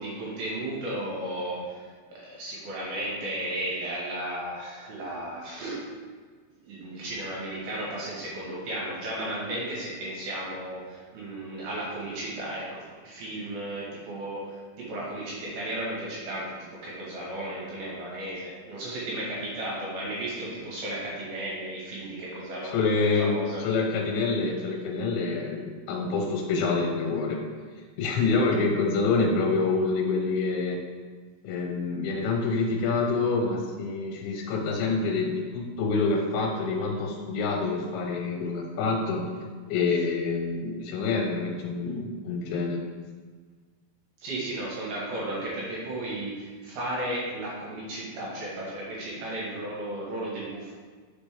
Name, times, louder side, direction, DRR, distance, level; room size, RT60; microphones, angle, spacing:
voice 1, 0.0-5.8 6.6-16.6 16.8-23.6 44.2-50.7, right 1 dB, 65° right, -5 dB, 2.8 m, -34 dB
voice 2, 22.7-27.4 28.0-30.8 31.4-39.3 39.7-42.8, left 4 dB, 85° left, 1 dB, 3.3 m, -27 dB
6.1 x 5.3 x 3.5 m, 1.5 s
omnidirectional pair, 5.1 m